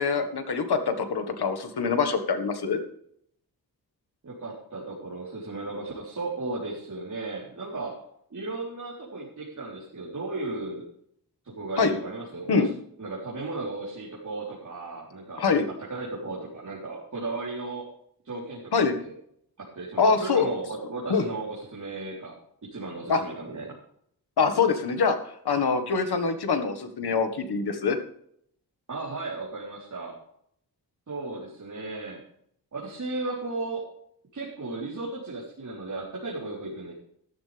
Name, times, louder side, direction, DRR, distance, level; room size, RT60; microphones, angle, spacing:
voice 1, 0.0-2.8 11.8-11.9 12.5-12.7 15.4-15.7 18.7-19.0 20.0-20.5 21.1-21.3 23.1-23.2 24.4-25.2 25.5-28.0, left 5 dB, 85° left, 8 dB, 1.8 m, -24 dB
voice 2, 4.2-8.0 8.3-10.8 11.4-12.7 13.0-15.5 15.9-17.9 18.2-18.7 19.0-19.1 19.6-22.3 22.6-23.8 28.9-30.2 31.1-32.2 32.7-33.8 34.3-36.9, right 3 dB, 50° right, -6 dB, 4.0 m, -35 dB
13.5 x 13.0 x 3.5 m, 0.68 s
wide cardioid pair, 130°, 38 cm